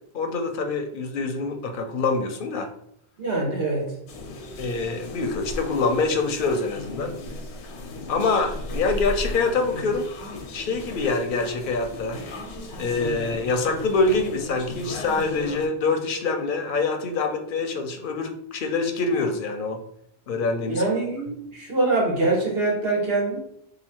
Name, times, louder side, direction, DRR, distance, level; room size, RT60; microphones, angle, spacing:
voice 1, 0.1-2.7 4.6-7.1 8.1-10.1 10.5-12.2 12.8-19.8 20.3-20.8, left 3 dB, 60° left, 5 dB, 0.7 m, -25 dB
voice 2, 3.2-3.9 20.7-23.4, right 2 dB, 65° right, -3 dB, 1.3 m, -24 dB
sound 1, 4.1-15.7, left 2 dB, 90° left, 0.9 m, -36 dB
2.8 x 2.6 x 4.3 m, 0.70 s
omnidirectional pair, 1.1 m